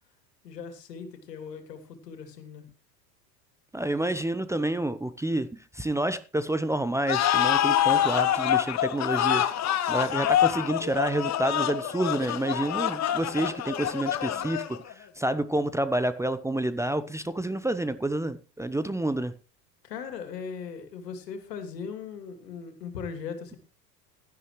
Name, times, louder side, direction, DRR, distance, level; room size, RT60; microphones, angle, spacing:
voice 1, 0.4-2.6 19.8-23.6, left 6 dB, 75° left, 3.0 m, -39 dB
voice 2, 3.7-9.5 9.8-19.3, right 1 dB, 5° right, 0.8 m, -29 dB
sound 1, 7.1-14.9, left 11 dB, 35° left, 1.4 m, -26 dB
16.5 x 13.0 x 3.2 m
figure-of-eight pair, 80°, 49 cm